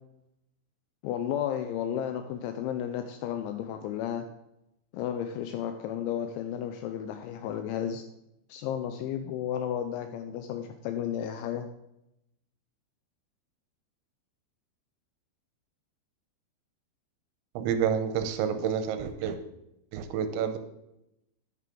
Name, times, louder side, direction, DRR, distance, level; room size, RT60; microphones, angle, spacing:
voice 1, 1.0-4.3 4.9-8.0 8.5-11.7, left 9 dB, 80° left, 7 dB, 2.9 m, -33 dB
voice 2, 17.6-19.4 19.9-20.6, right 8 dB, 80° right, 8 dB, 3.0 m, -29 dB
10.5 x 9.5 x 3.8 m, 0.85 s
omnidirectional pair, 5.5 m